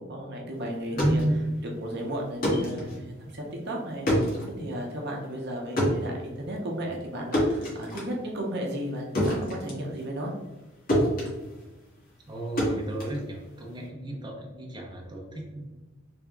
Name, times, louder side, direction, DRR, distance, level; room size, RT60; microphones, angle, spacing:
voice 1, 0.0-1.2 1.7-4.3 4.6-10.3, equal, 55° right, -1 dB, 0.7 m, -34 dB
sound 1, 0.7-10.6 10.9-13.9, equal, 45° left, 1.3 m, -29 dB
voice 2, 0.9-1.5 12.3-15.6, right 1 dB, 20° right, -2 dB, 0.8 m, -31 dB
3.4 x 2.8 x 3.4 m, 1.1 s
head